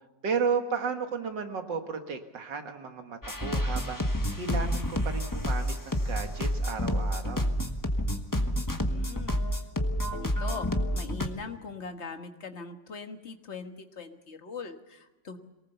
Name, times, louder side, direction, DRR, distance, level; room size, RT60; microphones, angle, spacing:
voice 1, 0.2-7.6, right 5 dB, 85° right, 6 dB, 2.4 m, -33 dB
sound 1, 3.2-11.3, equal, 15° left, 1.1 m, -29 dB
voice 2, 8.9-9.4 10.1-15.4, left 4 dB, 40° left, 6 dB, 1.6 m, -41 dB
23.0 x 19.0 x 6.9 m, 1.1 s
omnidirectional pair, 1.9 m